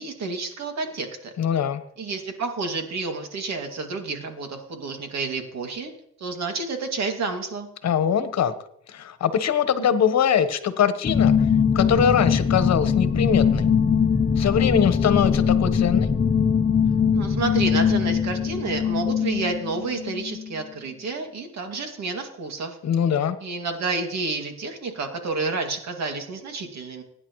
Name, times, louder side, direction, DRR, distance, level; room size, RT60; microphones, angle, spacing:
voice 1, 0.0-1.3 2.0-5.9 6.2-7.7 17.1-22.8 23.4-27.0, right 3 dB, 60° right, 4 dB, 2.5 m, -30 dB
voice 2, 1.4-1.8 7.8-8.5 8.9-11.3 11.7-13.7 14.4-16.1 22.8-23.4, left 8 dB, 60° left, 10 dB, 1.3 m, -22 dB
sound 1, 11.0-20.5, left 7 dB, 25° left, 0.9 m, -21 dB
24.0 x 9.8 x 3.2 m, 0.75 s
cardioid pair, 90°, 30 cm